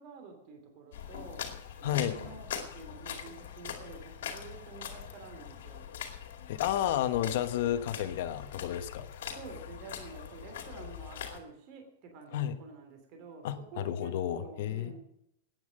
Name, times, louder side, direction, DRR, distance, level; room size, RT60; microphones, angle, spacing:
voice 1, 0.0-1.4 1.8-5.9 9.3-15.0, right 4 dB, 40° right, 4 dB, 2.9 m, -49 dB
sound 1, 0.9-11.4, left 8 dB, 85° left, 2.3 m, -42 dB
voice 2, 1.8-2.1 6.5-9.4 12.3-12.6 13.4-14.9, left 11 dB, 60° left, 9 dB, 1.2 m, -31 dB
14.0 x 9.5 x 6.4 m, 0.78 s
supercardioid pair, 170°, 0 cm